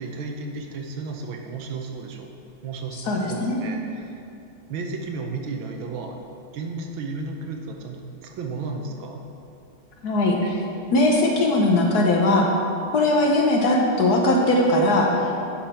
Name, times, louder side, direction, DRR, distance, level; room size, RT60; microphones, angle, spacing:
voice 1, 0.0-2.3 2.6-3.0 3.3-4.2 4.7-6.2 6.5-9.2 10.4-10.5, right 4 dB, 85° right, 2 dB, 1.6 m, -33 dB
voice 2, 2.9-3.7 10.0-10.6 10.9-12.5 12.9-15.5, left 1 dB, 60° left, 0 dB, 1.2 m, -20 dB
10.0 x 5.8 x 4.4 m, 2.6 s
omnidirectional pair, 2.2 m